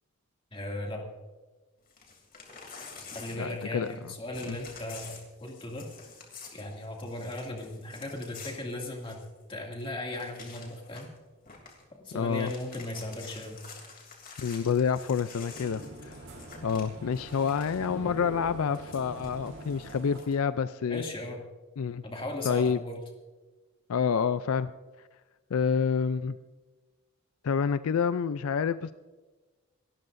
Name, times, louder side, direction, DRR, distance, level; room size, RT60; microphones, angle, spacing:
voice 1, 0.5-1.1 3.0-5.9 6.5-9.2 9.5-11.1 11.9-13.6 20.9-21.4 22.0-23.0, left 1 dB, 25° left, 0 dB, 2.4 m, -37 dB
Crumpling crinkling / Tearing, 1.9-4.0 4.3-9.4 9.8-9.9 10.1-11.2 11.4-11.8 12.2-17.9 18.7-20.3, left 5 dB, 40° left, 3.0 m, -48 dB
voice 2, 3.3-4.1 4.5-4.6 12.1-12.5 14.4-16.1 16.6-21.0 21.8-22.0 22.4-22.8 23.9-24.7 25.5-26.4 27.4-28.9, left 6 dB, 75° left, 13 dB, 0.4 m, -28 dB
sound 1, 15.2-20.2, right 1 dB, 75° right, 3.7 m, -44 dB
28.0 x 13.5 x 2.6 m, 1.2 s
head